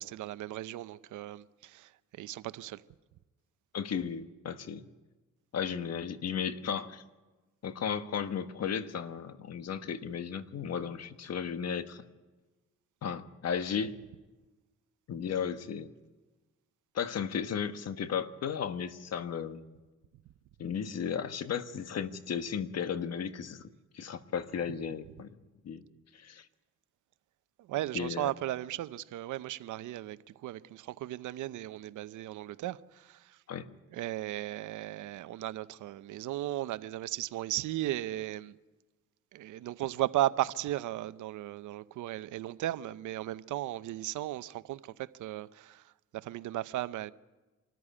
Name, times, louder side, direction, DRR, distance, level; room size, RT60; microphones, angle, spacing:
voice 1, 0.0-2.8 27.6-33.4 33.9-38.6 39.3-47.1, right 14 dB, 80° right, 0.8 m, -36 dB
voice 2, 3.7-4.8 5.5-7.0 7.6-12.0 13.0-14.0 15.1-15.9 16.9-19.7 20.6-23.7 23.9-25.3 25.6-25.8 26.1-26.5 27.9-28.3 33.5-33.7, left 7 dB, 55° left, 1.4 m, -35 dB
25.5 x 14.0 x 9.9 m
cardioid pair, 90°, 30 cm